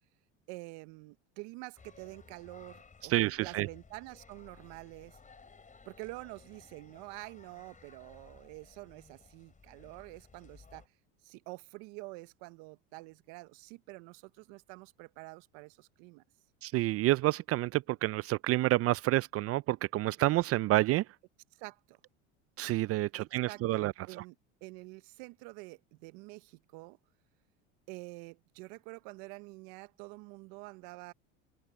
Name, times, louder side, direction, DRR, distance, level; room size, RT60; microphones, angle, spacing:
voice 1, 0.5-5.2 5.8-10.9 11.2-16.2 21.5-22.0 23.2-24.3 24.6-27.0 27.9-31.1, right 25 dB, 65° right, 1.1 m, -47 dB
sound 1, 1.8-10.9, left 4 dB, 20° left, 4.7 m, -57 dB
voice 2, 3.1-3.7 16.6-21.1 22.6-24.2, right 17 dB, 40° right, 0.4 m, -29 dB
hypercardioid pair, 90°, 37 cm